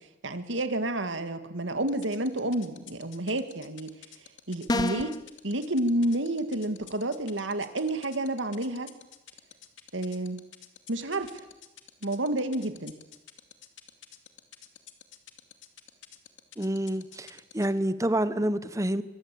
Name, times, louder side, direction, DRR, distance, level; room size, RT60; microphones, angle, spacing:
voice 1, 0.2-3.9 4.5-5.2 5.4-8.9 9.9-10.4 10.9-11.4 12.0-12.9, right 1 dB, 90° right, 9 dB, 2.3 m, -30 dB
sound 1, 1.9-17.8, left 11 dB, 90° left, 2.5 m, -48 dB
sound 2, 4.7-5.2, left 2 dB, 20° left, 0.8 m, -27 dB
voice 2, 16.6-17.3 17.5-19.0, right 1 dB, 15° right, 13 dB, 1.1 m, -27 dB
26.5 x 23.0 x 8.7 m, 0.99 s
head